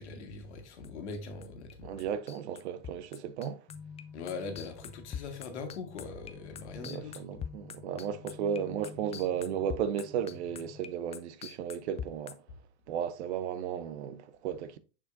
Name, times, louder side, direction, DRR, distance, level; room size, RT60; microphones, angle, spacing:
voice 1, 0.0-2.0 4.1-7.4, left 4 dB, 85° left, 1.6 m, -41 dB
sound 1, 0.8-1.7 2.0-12.3, left 8 dB, 20° left, 0.4 m, -42 dB
voice 2, 1.8-3.6 6.8-12.4 12.9-14.8, right 8 dB, 75° right, 0.7 m, -34 dB
sound 2, 3.7-10.8, left 6 dB, 35° left, 0.8 m, -50 dB
6.6 x 6.2 x 2.5 m
hypercardioid pair, 105°, 33 cm